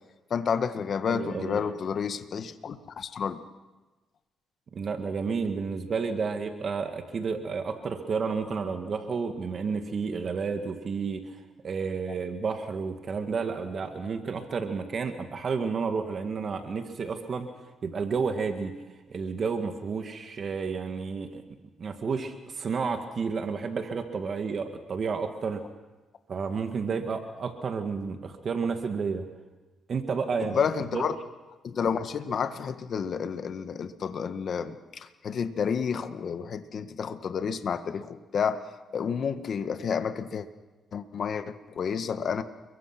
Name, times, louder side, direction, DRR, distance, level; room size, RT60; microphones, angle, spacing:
voice 1, 0.3-3.4 30.4-31.1 31.6-38.6 38.9-40.5 40.9-42.4, left 6 dB, 55° left, 10 dB, 1.5 m, -30 dB
voice 2, 1.0-1.6 4.7-17.5 17.8-18.7 19.1-21.4 21.8-25.6 26.3-29.3 29.9-30.6 30.9-31.0, right 5 dB, 50° right, 6 dB, 2.0 m, -31 dB
29.5 x 22.5 x 6.0 m, 1.2 s
cardioid pair, 90°, 0 cm